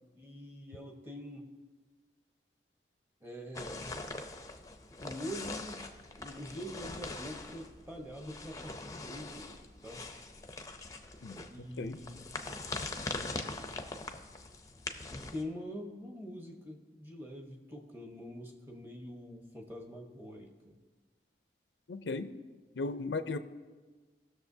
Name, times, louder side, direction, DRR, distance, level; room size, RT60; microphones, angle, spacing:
voice 1, 0.2-1.5 3.2-4.0 5.0-5.8 6.2-10.0 11.5-12.8 15.1-20.8, equal, 10° right, 1 dB, 1.0 m, -45 dB
sound 1, 3.5-15.4, left 3 dB, 20° left, 0.5 m, -42 dB
voice 2, 21.9-22.3 22.8-23.4, left 3 dB, 85° left, 11 dB, 0.5 m, -36 dB
18.0 x 6.6 x 2.7 m, 1.4 s
head